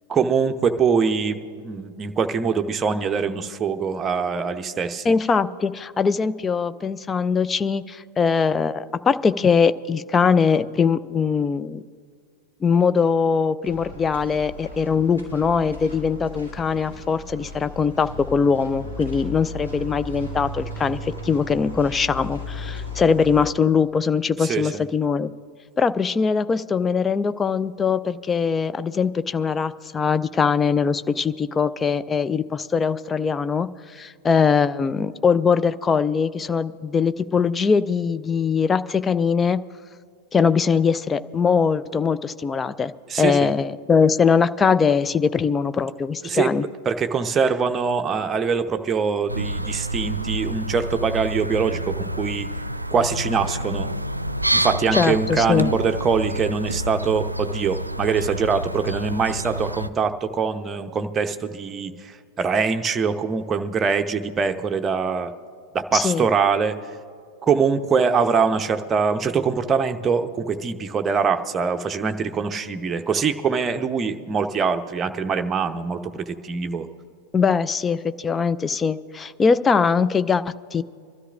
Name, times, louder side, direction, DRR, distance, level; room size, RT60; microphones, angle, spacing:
voice 1, 0.1-5.1 24.4-24.8 43.1-43.5 46.2-46.5 46.9-52.5 52.9-53.9 54.5-65.3 65.7-66.8 67.4-76.9, right 5 dB, 20° right, 7 dB, 0.8 m, -23 dB
voice 2, 5.0-11.8 12.6-25.3 25.8-39.6 40.3-42.9 43.2-46.6 54.9-55.7 65.9-66.3 77.3-80.8, left 5 dB, 15° left, 14 dB, 0.4 m, -21 dB
sound 1, 13.6-23.5, left 1 dB, 80° left, 3.4 m, -36 dB
sound 2, 49.3-59.9, right 1 dB, 85° right, 0.4 m, -28 dB
25.5 x 13.0 x 2.5 m, 2.1 s
figure-of-eight pair, 90°, 0 cm